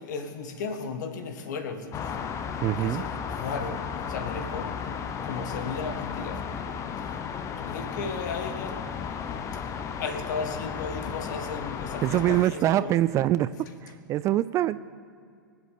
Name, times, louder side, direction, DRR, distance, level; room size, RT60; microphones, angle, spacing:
voice 1, 0.0-2.1 2.8-6.4 7.6-8.8 9.5-9.7 10.0-12.9, left 4 dB, 55° left, 8 dB, 1.7 m, -35 dB
sound 1, 1.9-12.4, left 7 dB, 25° left, 0.9 m, -34 dB
voice 2, 2.6-3.0 12.0-13.5 13.8-14.8, right 13 dB, 25° right, 15 dB, 0.3 m, -24 dB
23.5 x 7.8 x 6.9 m, 2.3 s
figure-of-eight pair, 105°, 11 cm